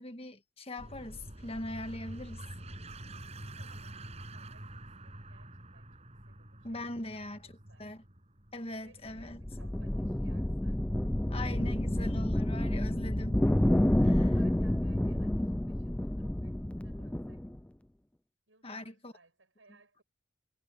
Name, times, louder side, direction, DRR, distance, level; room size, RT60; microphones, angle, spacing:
voice 1, 0.0-2.4 6.6-7.4 7.8-8.0 8.5-9.4 11.3-13.4 14.1-14.3 18.6-19.1, left 1 dB, 30° left, 1.5 m, -40 dB
sound 1, 0.8-11.9, right 1 dB, 35° right, 6.0 m, -47 dB
voice 2, 3.3-7.9 8.8-10.9 11.5-12.1 14.0-17.5 18.5-20.0, right 3 dB, 85° right, 7.8 m, -65 dB
sound 2, 9.1-17.6, left 1 dB, 5° left, 0.3 m, -29 dB
head